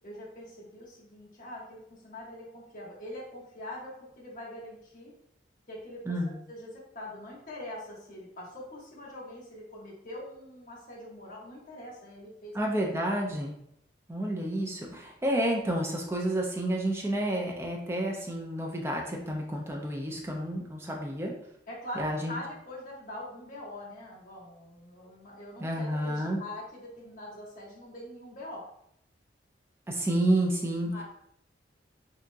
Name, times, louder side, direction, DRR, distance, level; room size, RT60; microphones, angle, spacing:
voice 1, 0.0-5.1 5.7-6.1 6.5-12.6 21.7-28.7 30.8-31.0, left 1 dB, 45° left, -5 dB, 0.9 m, -43 dB
voice 2, 12.5-13.6 14.1-21.3 22.0-22.3 25.6-26.4 29.9-30.9, right 1 dB, 15° right, -1 dB, 0.4 m, -30 dB
2.8 x 2.3 x 2.5 m, 0.73 s
head